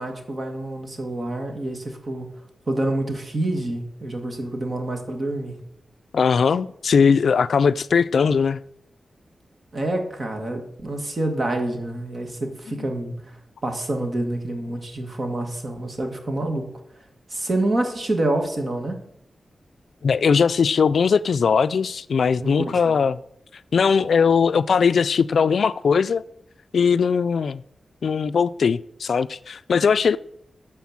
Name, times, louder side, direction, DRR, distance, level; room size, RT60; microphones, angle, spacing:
voice 1, 0.0-2.3 2.7-5.6 9.7-13.4 13.6-16.7 17.3-19.0 22.4-23.0, right 1 dB, 35° right, 1.7 m, -27 dB
voice 2, 6.1-8.6 20.0-23.2 23.7-26.2 26.7-27.6 28.0-30.2, left 6 dB, 65° left, 0.3 m, -19 dB
12.0 x 4.4 x 7.2 m
wide cardioid pair, 155°, 0 cm